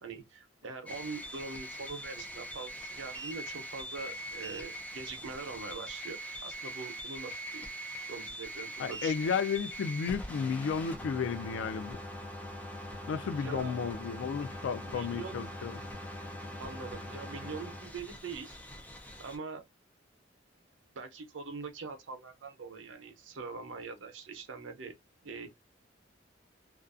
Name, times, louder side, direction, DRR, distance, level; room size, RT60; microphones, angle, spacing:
voice 1, 0.0-9.2 13.4-13.7 14.8-15.4 16.6-18.6 19.2-19.6 20.9-24.9 25.2-25.5, right 4 dB, 90° right, 0.6 m, -43 dB
sound 1, 0.9-19.4, equal, 10° left, 0.5 m, -42 dB
voice 2, 8.8-12.0 13.1-15.8, left 6 dB, 75° left, 0.3 m, -33 dB
2.4 x 2.3 x 2.4 m
head